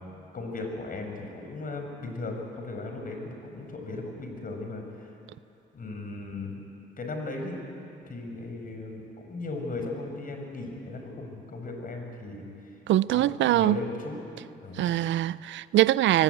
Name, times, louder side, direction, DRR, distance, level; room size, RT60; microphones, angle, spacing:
voice 1, 0.3-5.1 5.7-6.6 7.0-7.6 8.1-12.5 13.1-14.2 14.6-15.0, left 2 dB, 45° left, 5.6 m, -37 dB
voice 2, 12.9-13.8 14.8-16.2, right 14 dB, 70° right, 0.5 m, -23 dB
24.0 x 18.5 x 9.2 m
cardioid pair, 90°, 20 cm